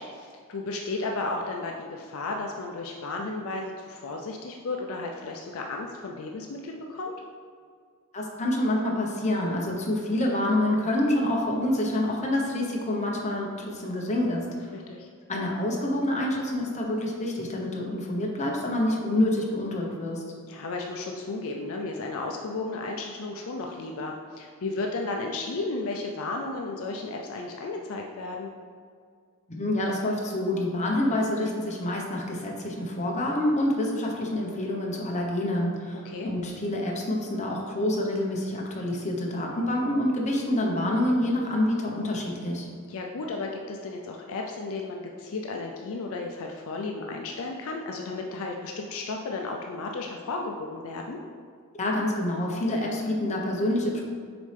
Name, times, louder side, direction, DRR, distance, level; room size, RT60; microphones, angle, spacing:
voice 1, 0.1-7.1 14.7-15.1 20.5-28.5 36.0-36.3 42.9-51.2, left 3 dB, 65° left, 1 dB, 0.5 m, -34 dB
voice 2, 8.1-14.5 15.3-20.2 29.5-42.7 51.8-54.0, left 1 dB, 30° left, -1 dB, 0.9 m, -27 dB
6.9 x 4.2 x 3.3 m, 2.1 s
head